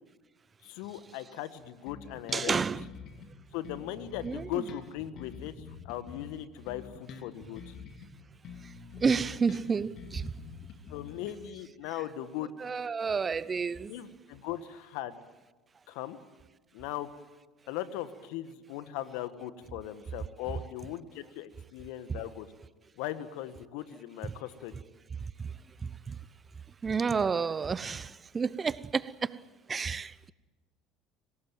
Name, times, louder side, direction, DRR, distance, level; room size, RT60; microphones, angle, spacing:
voice 1, 0.6-2.6 3.5-5.5 5.8-7.7 10.9-12.5 13.9-15.2 15.9-16.2 16.7-17.1 17.7-22.5 23.0-24.8, left 12 dB, 70° left, 1.5 m, -38 dB
Bass guitar, 1.8-3.3 3.6-8.1 8.4-11.4, left 6 dB, 50° left, 3.2 m, -47 dB
voice 2, 2.3-2.9 4.2-4.6 9.0-10.3 12.6-13.9 24.2-24.3 26.1-26.2 26.8-29.4 29.7-30.3, right 5 dB, 30° right, 0.8 m, -30 dB
26.0 x 18.5 x 9.2 m
hypercardioid pair, 65°, 0 cm